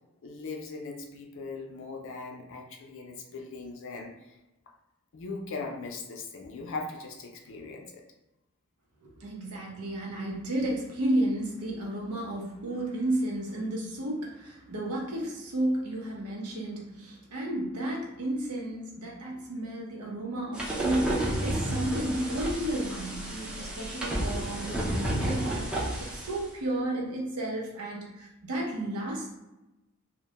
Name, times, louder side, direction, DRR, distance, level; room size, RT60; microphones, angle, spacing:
voice 1, 0.2-4.4 5.1-8.0, left 3 dB, 60° left, 1 dB, 0.4 m, -39 dB
voice 2, 9.0-29.3, right 1 dB, 80° right, -2 dB, 0.7 m, -32 dB
sound 1, 20.5-26.4, right 1 dB, 5° right, 0.4 m, -31 dB
2.1 x 2.1 x 2.8 m, 0.99 s
head